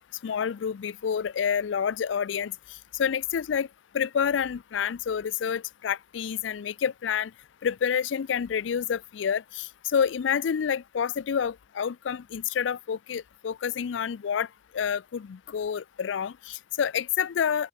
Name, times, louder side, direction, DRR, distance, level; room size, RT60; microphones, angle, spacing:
voice 1, 0.2-2.5 2.9-3.7 3.9-7.3 7.6-14.5 14.7-17.7, left 7 dB, 85° left, 0.4 m, -28 dB
open air
head